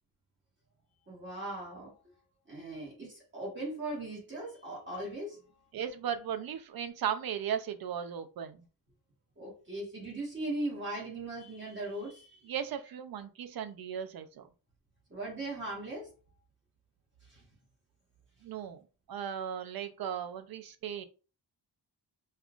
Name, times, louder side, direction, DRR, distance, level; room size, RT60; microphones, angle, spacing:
voice 1, 1.1-1.9 2.5-5.4 9.4-12.4 15.1-16.1 17.2-17.4, right 2 dB, 30° right, -3 dB, 1.3 m, -39 dB
voice 2, 5.7-8.6 12.4-14.5 18.4-18.8 19.1-21.0, right 8 dB, 65° right, 10 dB, 0.6 m, -36 dB
5.4 x 2.4 x 2.4 m, 0.34 s
wide cardioid pair, 170°, 40 cm